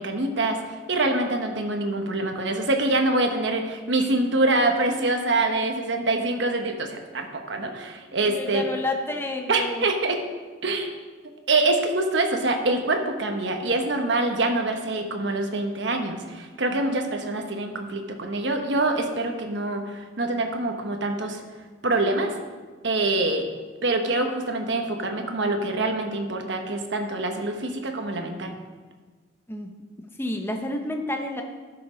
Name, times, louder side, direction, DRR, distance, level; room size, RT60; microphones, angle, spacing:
voice 1, 0.0-8.7 9.5-10.2 10.6-10.9 11.5-21.4 21.8-22.3 22.8-23.5 23.8-28.5, right 2 dB, 65° right, 4 dB, 1.2 m, -25 dB
voice 2, 8.2-9.9 16.9-17.0 29.5-29.7 30.2-31.4, left 1 dB, 10° left, 3 dB, 0.7 m, -30 dB
12.5 x 6.0 x 5.0 m, 1.4 s
head